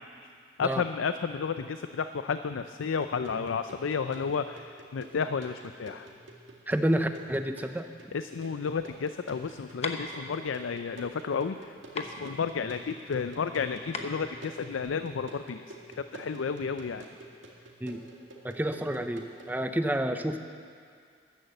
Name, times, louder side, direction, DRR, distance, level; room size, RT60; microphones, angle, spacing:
voice 1, 0.6-6.1 8.1-11.5 11.9-15.7 16.1-17.0, left 5 dB, 90° left, 10 dB, 0.4 m, -32 dB
sound 1, 2.8-19.6, right 1 dB, 85° right, 2.1 m, -49 dB
voice 2, 6.7-7.9 17.8-18.0 18.4-20.4, right 1 dB, 10° right, 7 dB, 0.6 m, -29 dB
sound 2, 8.7-15.3, left 3 dB, 35° left, 0.9 m, -41 dB
13.5 x 10.5 x 7.8 m, 2.2 s
head